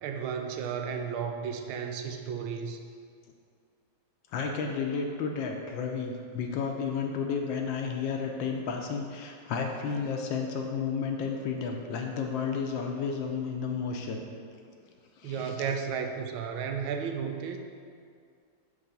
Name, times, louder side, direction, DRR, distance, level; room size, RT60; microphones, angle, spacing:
voice 1, 0.0-2.8 15.2-17.6, right 6 dB, 85° right, 4 dB, 1.4 m, -33 dB
voice 2, 4.3-14.2 15.2-15.6, left 5 dB, 75° left, 2 dB, 1.2 m, -32 dB
6.8 x 3.2 x 5.3 m, 2.2 s
omnidirectional pair, 2.2 m